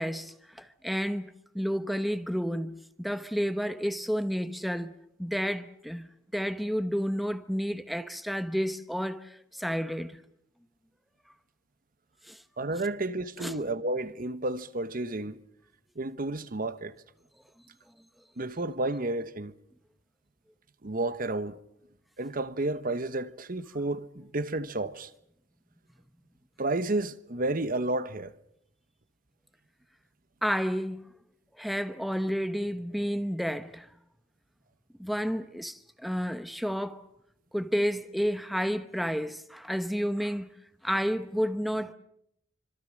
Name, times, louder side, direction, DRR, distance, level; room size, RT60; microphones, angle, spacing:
voice 1, 0.0-4.9 5.2-10.2 12.2-12.4 13.4-13.5 30.4-31.0 31.6-33.9 35.0-37.0 37.5-40.5 40.8-41.9, equal, ahead, 0.9 m, -31 dB
voice 2, 12.6-15.4 16.0-16.9 18.4-19.5 20.8-21.6 22.2-25.1 26.6-28.3, right 2 dB, 45° right, 1.1 m, -31 dB
27.0 x 25.5 x 6.4 m
head